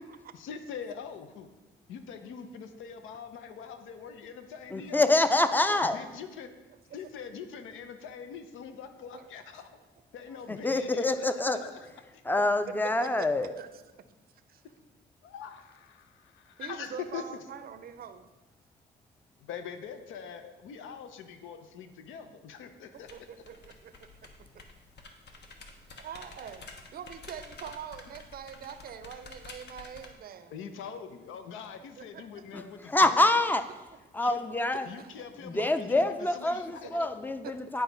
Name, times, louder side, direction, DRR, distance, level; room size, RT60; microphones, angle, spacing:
voice 1, 0.3-1.5 1.9-5.1 5.9-6.5 6.9-9.7 10.1-11.7 12.1-12.2 15.2-17.2 19.5-23.1 30.5-33.2 34.2-34.4 34.9-37.0, left 7 dB, 80° left, 9 dB, 0.7 m, -43 dB
voice 2, 4.7-6.0 10.5-11.7 12.2-13.5 32.5-33.7 34.1-34.9 35.4-37.8, left 2 dB, 10° left, 10 dB, 0.5 m, -26 dB
voice 3, 9.1-9.7 10.3-10.4 12.8-13.3 13.6-13.7 14.5-14.6 16.6-18.3 23.1-24.6 26.0-30.5 32.0-32.4 34.8-35.3 36.8-36.9 37.4-37.5, right 8 dB, 50° right, 10 dB, 0.5 m, -44 dB
sound 1, 22.9-30.1, left 3 dB, 60° left, 1.0 m, -50 dB
9.9 x 4.8 x 3.9 m, 1.1 s
cardioid pair, 90°, 20 cm